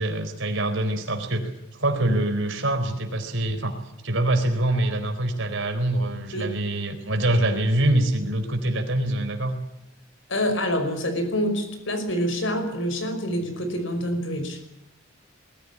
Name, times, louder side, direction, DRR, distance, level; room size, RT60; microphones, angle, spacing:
voice 1, 0.0-1.5 1.8-9.5, right 1 dB, 60° right, 5 dB, 4.4 m, -24 dB
voice 2, 10.3-14.6, equal, 65° left, 7 dB, 5.4 m, -26 dB
22.0 x 15.0 x 10.0 m, 0.90 s
head